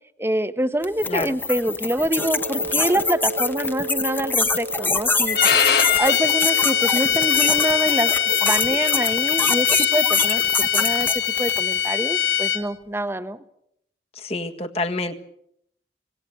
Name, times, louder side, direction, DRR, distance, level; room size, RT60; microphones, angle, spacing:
voice 1, 0.2-5.4 6.0-8.1 8.4-10.4 10.7-11.1 11.4-13.4, right 1 dB, 15° right, 11 dB, 1.1 m, -25 dB
sound 1, 0.8-11.8, left 3 dB, 10° left, 1.0 m, -24 dB
Wind instrument woodwind instrument, 2.1-9.5, right 2 dB, 50° right, 1.6 m, -35 dB
Bowed string instrument, 5.3-12.6, left 9 dB, 60° left, 2.9 m, -21 dB
voice 2, 14.1-15.1, left 2 dB, 35° left, 5 dB, 1.7 m, -27 dB
26.0 x 18.5 x 8.3 m, 0.74 s
head